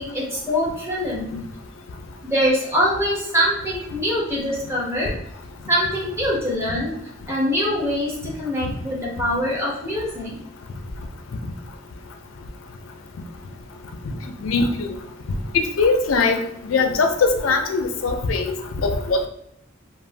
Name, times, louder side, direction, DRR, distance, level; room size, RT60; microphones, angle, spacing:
voice 1, 0.0-1.4 2.2-5.1 5.7-6.9 7.3-10.4, equal, 15° right, -5 dB, 1.0 m, -23 dB
voice 2, 14.4-14.9 15.5-16.4 16.7-19.3, left 4 dB, 75° left, 5 dB, 0.4 m, -21 dB
2.4 x 2.1 x 3.2 m, 0.77 s
head